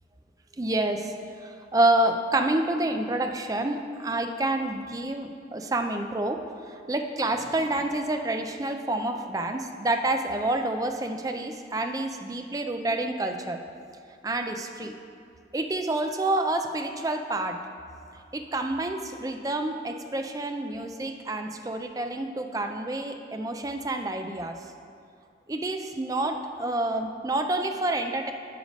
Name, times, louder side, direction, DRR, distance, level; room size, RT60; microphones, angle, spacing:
voice 1, 0.6-1.2 1.4-6.4 6.9-13.6 14.2-14.9 15.5-17.6 18.3-24.6 25.5-28.3, right 2 dB, 20° right, 5 dB, 0.4 m, -28 dB
9.1 x 4.9 x 5.1 m, 2.4 s
head